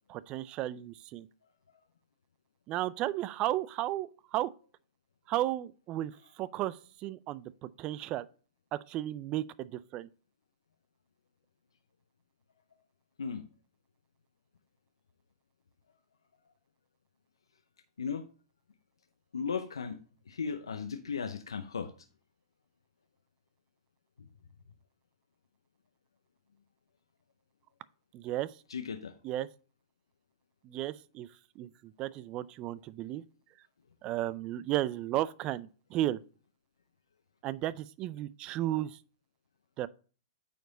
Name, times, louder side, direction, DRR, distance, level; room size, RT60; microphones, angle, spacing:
voice 1, 0.1-1.3 2.7-4.5 5.3-6.1 6.4-8.3 8.7-10.1 28.1-28.5 29.2-29.5 30.6-31.3 31.6-33.2 34.0-36.2 37.4-39.0 39.8-39.9, right 14 dB, 35° right, 0.4 m, -34 dB
voice 2, 19.3-20.0 20.3-21.9 24.2-24.3 28.7-29.1, left 6 dB, 85° left, 0.6 m, -36 dB
9.0 x 4.8 x 3.9 m
hypercardioid pair, 115°, 3 cm